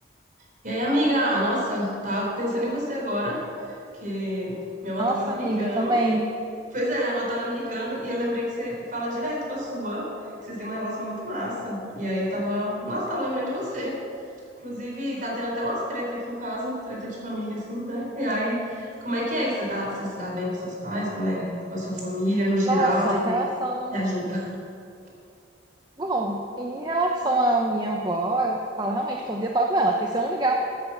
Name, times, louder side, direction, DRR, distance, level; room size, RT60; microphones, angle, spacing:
voice 1, 0.6-6.0 6.7-10.1 10.4-14.0 14.6-23.4 23.9-24.5, equal, 45° right, -3 dB, 4.4 m, -28 dB
voice 2, 5.0-6.2 22.7-23.9 26.0-30.5, right 2 dB, 25° right, 0 dB, 0.9 m, -25 dB
15.5 x 8.7 x 7.3 m, 2.6 s
head